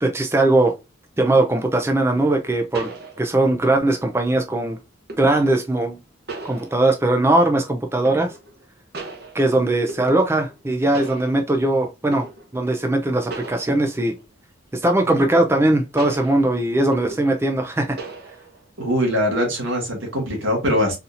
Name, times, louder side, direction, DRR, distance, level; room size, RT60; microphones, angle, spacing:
voice 1, 0.0-0.7 1.2-2.9 3.2-4.8 5.2-6.0 6.4-8.3 9.3-12.3 12.5-14.1 14.7-18.0, right 2 dB, 15° right, 0.4 m, -20 dB
sound 1, 2.7-3.6 5.1-5.5 6.3-7.2 8.0-8.6 8.9-10.6 10.9-11.7 12.1-12.6 13.3-14.2 15.1-15.7 16.0-17.6 18.0-18.6, right 3 dB, 50° right, 0.8 m, -37 dB
voice 2, 18.8-21.0, equal, 85° right, 1.8 m, -22 dB
4.0 x 2.7 x 2.5 m
head